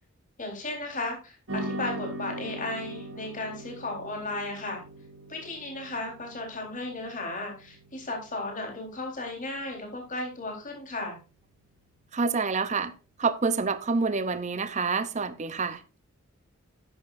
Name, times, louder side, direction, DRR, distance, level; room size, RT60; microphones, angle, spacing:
voice 1, 0.4-4.8 5.3-11.2, left 2 dB, 35° left, 4.0 m, -35 dB
sound 1, 1.5-10.0, right 1 dB, 60° right, 2.7 m, -41 dB
voice 2, 12.1-12.9 13.2-15.8, right 4 dB, 30° right, 0.7 m, -27 dB
11.5 x 10.5 x 2.6 m
head